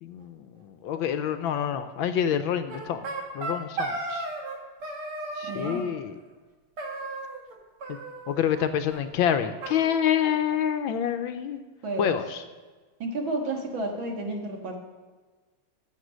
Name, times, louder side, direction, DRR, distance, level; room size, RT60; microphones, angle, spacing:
voice 1, 0.0-3.1 3.3-4.3 5.3-6.2 8.3-11.6 12.0-12.4, left 9 dB, 75° left, 9 dB, 1.3 m, -27 dB
sound 1, 2.7-4.6 4.8-5.9 6.8-7.5 7.8-8.6 8.9-9.0 9.3-9.4 9.6-10.7, right 2 dB, 80° right, 2.6 m, -35 dB
voice 2, 5.5-5.9 11.8-12.1 13.0-14.8, right 2 dB, 65° right, 2 dB, 2.3 m, -31 dB
14.0 x 6.7 x 6.3 m, 1.4 s
omnidirectional pair, 2.4 m